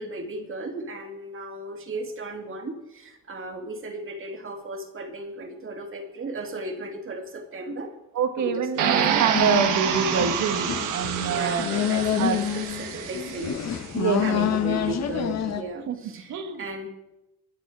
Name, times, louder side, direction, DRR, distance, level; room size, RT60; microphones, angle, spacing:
voice 1, 0.0-7.9 8.4-9.3 11.2-16.9, right 2 dB, 45° right, 4 dB, 2.3 m, -35 dB
voice 2, 8.1-11.7 12.2-12.4 13.9-14.5 15.9-16.0 16.3-16.6, right 6 dB, 75° right, 7 dB, 1.6 m, -26 dB
sound 1, 8.8-13.8, right 8 dB, 90° right, 1.5 m, -27 dB
sound 2, 9.3-15.6, left 9 dB, 60° left, 1.3 m, -28 dB
21.0 x 7.3 x 4.8 m, 0.91 s
cardioid pair, 90°, 30 cm